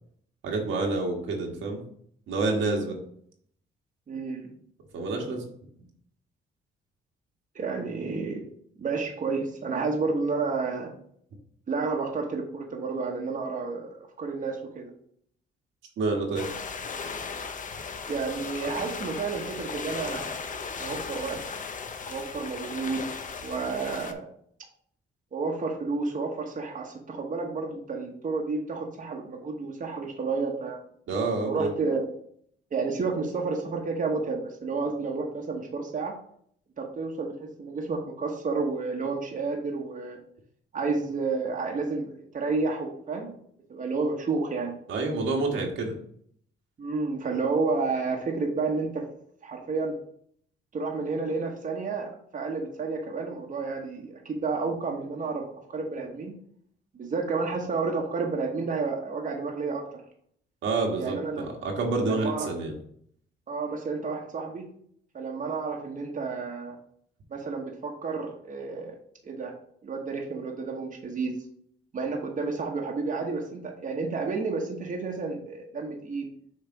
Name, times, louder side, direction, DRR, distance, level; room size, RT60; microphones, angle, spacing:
voice 1, 0.4-1.8 2.3-3.0 4.9-5.4 16.0-16.5 31.1-31.7 44.9-45.9 60.6-62.7, right 3 dB, 75° right, 0 dB, 1.6 m, -28 dB
voice 2, 4.1-4.5 7.5-8.4 8.8-10.9 11.7-14.9 18.1-20.4 20.8-21.4 22.1-23.0 23.4-24.3 25.3-30.8 31.4-32.1 32.7-36.1 36.8-37.3 37.6-40.2 40.7-43.3 43.7-44.8 46.8-49.0 49.4-49.9 50.7-56.3 56.9-59.8 61.0-61.5 62.1-62.5 63.5-64.7 65.1-66.8 67.3-69.0 69.2-69.5 69.8-71.4 71.9-76.3, right 4 dB, 40° right, 0 dB, 1.1 m, -30 dB
sound 1, 16.4-24.1, left 5 dB, 40° left, 0.7 m, -36 dB
6.6 x 3.3 x 4.7 m, 0.65 s
cardioid pair, 90°, 20 cm